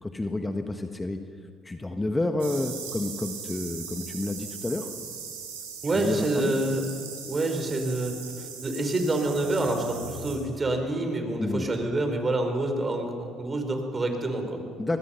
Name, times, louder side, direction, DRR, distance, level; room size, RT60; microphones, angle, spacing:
voice 1, 0.0-1.2 1.6-4.9 5.9-6.5 11.4-11.6 14.8-15.0, left 2 dB, 15° left, 6 dB, 1.4 m, -29 dB
sound 1, 2.4-10.4, right 6 dB, 90° right, 5.3 m, -39 dB
voice 2, 5.8-6.9 7.2-14.6, right 2 dB, 30° right, 5 dB, 4.6 m, -27 dB
24.5 x 20.5 x 5.8 m, 2.2 s
hypercardioid pair, 60°, 0 cm